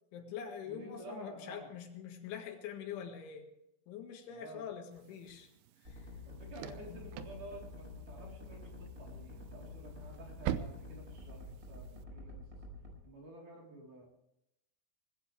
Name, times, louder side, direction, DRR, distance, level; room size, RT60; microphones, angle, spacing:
voice 1, 0.1-3.5 3.9-5.5 5.8-6.1 6.6-7.1, left 8 dB, 80° left, 4 dB, 4.2 m, -45 dB
voice 2, 0.6-1.7 4.2-4.7 6.2-12.4 13.0-14.1, right 1 dB, 45° right, -1 dB, 5.0 m, -51 dB
sound 1, 4.9-12.0, right 11 dB, 85° right, 2.3 m, -45 dB
sound 2, 5.8-12.9, left 2 dB, 20° right, 4.8 m, -48 dB
20.0 x 16.5 x 3.4 m, 0.84 s
omnidirectional pair, 5.4 m